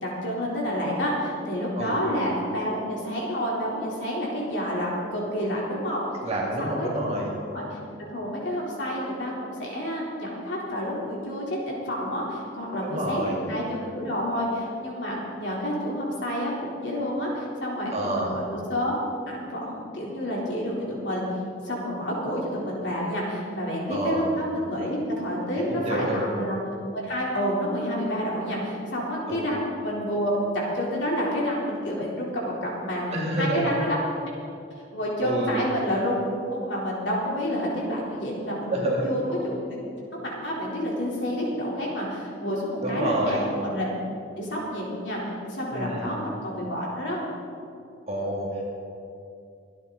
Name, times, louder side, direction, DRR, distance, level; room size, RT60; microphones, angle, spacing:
voice 1, 0.0-6.0 6.6-7.2 7.5-19.0 19.3-21.2 21.6-26.6 26.9-34.0 34.9-36.1 36.5-39.8 40.1-43.9 44.4-45.2 45.5-47.2, equal, 60° left, -4 dB, 3.8 m, -29 dB
voice 2, 6.2-7.3 12.8-13.4 17.9-18.3 23.9-24.2 25.7-26.2 29.3-29.5 33.1-33.7 35.2-35.6 38.7-39.2 42.8-43.4 45.7-46.2 48.1-48.7, right 1 dB, 30° right, -3 dB, 2.4 m, -28 dB
24.5 x 9.7 x 4.1 m, 2.5 s
head